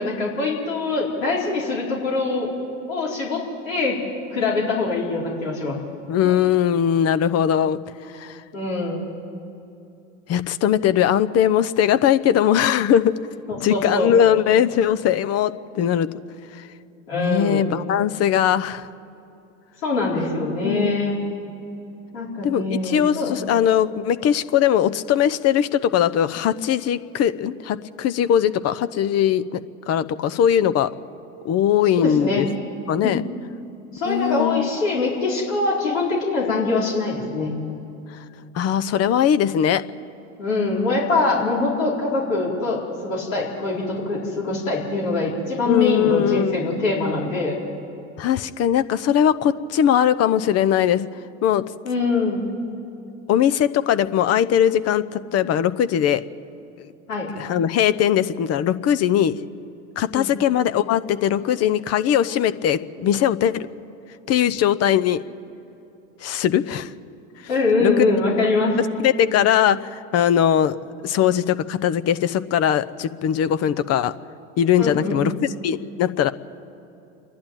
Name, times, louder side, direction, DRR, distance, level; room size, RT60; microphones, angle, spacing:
voice 1, 0.0-2.5 2.9-4.0 4.3-5.8 6.2-6.3 8.5-9.0 13.5-14.1 17.1-17.6 19.8-21.2 22.1-23.4 31.9-32.5 33.0-33.2 33.9-37.5 40.4-47.6 51.8-52.4 57.1-57.3 60.1-60.3 67.5-68.8 74.8-75.2, left 3 dB, 85° left, -4 dB, 4.5 m, -23 dB
voice 2, 6.1-7.8 8.1-8.4 10.3-13.1 13.6-16.1 17.1-18.9 20.6-20.9 22.4-29.6 29.9-30.9 31.4-32.5 32.9-33.2 34.1-34.7 38.5-39.8 45.7-46.6 48.2-51.1 51.4-51.6 53.3-56.2 56.8-56.9 57.4-59.4 60.0-63.7 64.3-65.2 66.2-66.9 67.8-67.9 69.0-70.7 71.0-74.1 74.6-75.3 75.6-76.3, left 9 dB, 40° left, 13 dB, 0.8 m, -20 dB
28.0 x 11.5 x 9.0 m, 2.8 s
hypercardioid pair, 90°, 38 cm